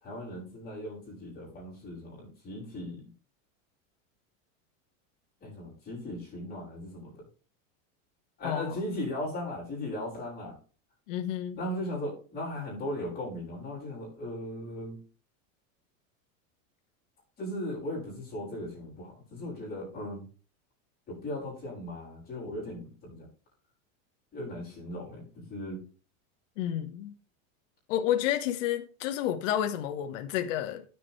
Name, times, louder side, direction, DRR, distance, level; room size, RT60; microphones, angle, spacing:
voice 1, 0.0-3.1 5.4-7.1 8.4-10.6 11.6-15.0 17.4-20.2 21.1-23.3 24.3-25.8, left 1 dB, 25° left, 6.4 m, -37 dB
voice 2, 8.4-8.8 11.1-11.6 26.6-27.1 27.9-30.8, left 11 dB, 65° left, 1.4 m, -30 dB
16.5 x 7.2 x 3.3 m
supercardioid pair, 165°, 40 cm